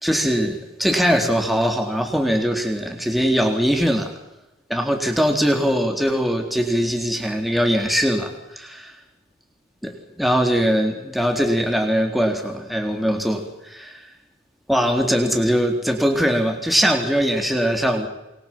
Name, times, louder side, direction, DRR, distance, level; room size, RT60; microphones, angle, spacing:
voice 1, 0.0-4.1 4.7-8.9 9.8-14.0 14.7-18.1, equal, ahead, 3 dB, 3.9 m, -21 dB
28.5 x 23.5 x 7.6 m, 0.95 s
head